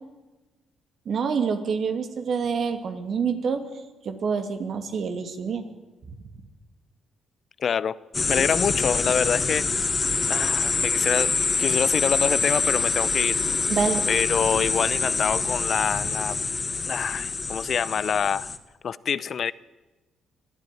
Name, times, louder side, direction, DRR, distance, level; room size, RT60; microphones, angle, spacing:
voice 1, 1.1-3.6 4.0-5.7 13.7-14.0, right 6 dB, 60° right, 7 dB, 2.5 m, -26 dB
voice 2, 7.6-8.0 8.3-9.6 10.3-11.3 11.6-13.4 14.1-16.4 16.9-18.5 18.8-19.5, left 7 dB, 55° left, 19 dB, 0.6 m, -26 dB
sound 1, 8.1-18.6, left 4 dB, 30° left, 1.4 m, -25 dB
22.5 x 13.0 x 9.3 m, 1.2 s
cardioid pair, 90°, 0 cm